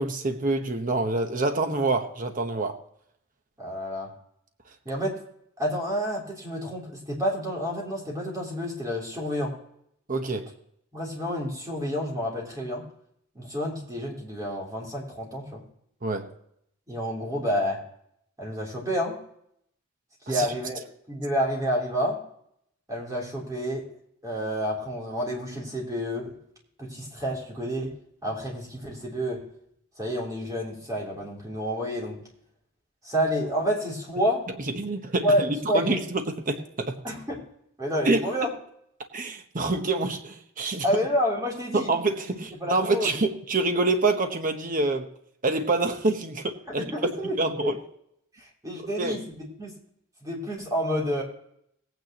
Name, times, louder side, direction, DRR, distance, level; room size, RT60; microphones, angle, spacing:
voice 1, 0.0-2.8 10.1-10.5 16.0-16.3 20.3-20.5 34.7-37.0 38.0-38.4 39.1-40.9 41.7-45.1 45.4-46.9 47.4-47.8 49.0-49.2, right 2 dB, 40° right, 6 dB, 1.0 m, -26 dB
voice 2, 3.6-4.1 4.8-5.2 5.6-9.5 10.9-12.8 13.3-15.6 16.9-17.8 18.4-19.2 20.3-22.2 22.9-23.9 24.2-26.4 26.8-27.9 28.2-29.5 30.0-32.2 33.0-34.4 35.2-36.0 37.0-37.4 37.8-38.5 40.8-41.9 42.6-43.1 46.7-47.7 48.6-49.7 50.2-51.2, equal, 15° right, -3 dB, 3.4 m, -29 dB
18.0 x 9.2 x 3.0 m, 0.72 s
head